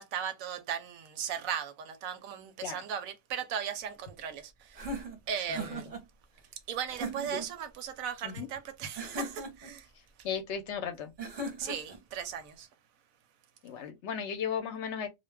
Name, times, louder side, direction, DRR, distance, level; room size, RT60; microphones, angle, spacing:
voice 1, 0.0-5.0 5.3-5.9 6.7-9.9 11.6-12.7, right 8 dB, 90° right, 1.0 m, -37 dB
sound 1, 4.7-6.0 6.9-7.5 9.0-9.7 11.2-12.0, right 1 dB, 35° right, 0.7 m, -38 dB
voice 2, 10.2-11.1 13.6-15.1, left 7 dB, 65° left, 0.8 m, -35 dB
2.5 x 2.1 x 3.3 m
omnidirectional pair, 1.4 m